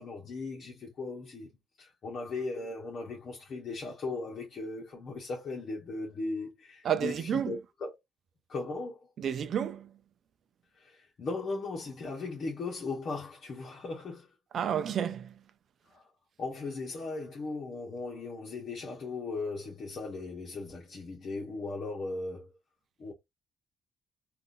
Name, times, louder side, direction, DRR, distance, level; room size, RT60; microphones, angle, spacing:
voice 1, 0.0-1.5 1.8-8.0 8.5-9.1 10.8-14.3 15.9-16.0 16.4-22.5 23.0-23.1, left 3 dB, 55° left, 1.1 m, -38 dB
voice 2, 6.8-7.5 9.2-9.9 14.5-15.3, right 8 dB, 60° right, 0.5 m, -30 dB
3.7 x 2.6 x 2.6 m
cardioid pair, 90°, 0 cm